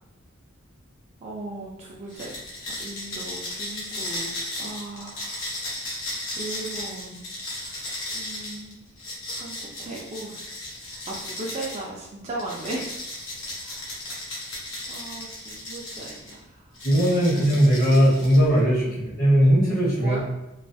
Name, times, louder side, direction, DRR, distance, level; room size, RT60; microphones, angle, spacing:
voice 1, 1.2-2.4 2.8-4.3 4.6-5.5 6.0-8.8 9.3-10.5 10.8-12.9 13.6-13.9 14.9-16.4 17.2-17.7 18.8-19.0 20.0-20.2, right 2 dB, 30° right, -3 dB, 0.3 m, -37 dB
sound 1, 2.1-11.8 12.4-16.3 16.7-18.6, left 1 dB, 70° left, 0.8 m, -35 dB
voice 2, 16.8-20.2, equal, 45° left, -5 dB, 0.8 m, -19 dB
2.4 x 2.3 x 2.6 m, 0.91 s
head